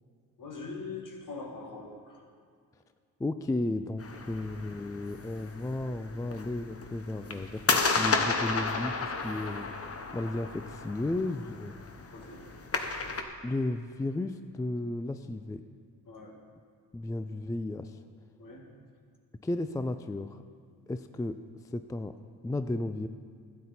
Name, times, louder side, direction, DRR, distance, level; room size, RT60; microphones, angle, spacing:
voice 1, 0.4-2.3 12.1-12.9 16.1-16.4 18.4-18.7, left 3 dB, 55° left, 1 dB, 2.0 m, -43 dB
voice 2, 3.2-11.8 13.4-15.6 16.9-18.0 19.4-20.4 20.9-22.2 22.4-23.1, left 2 dB, 10° left, 10 dB, 0.3 m, -34 dB
sound 1, 4.0-13.2, left 4 dB, 35° left, 1.0 m, -33 dB
12.0 x 9.5 x 4.2 m, 2.2 s
cardioid pair, 65°, 39 cm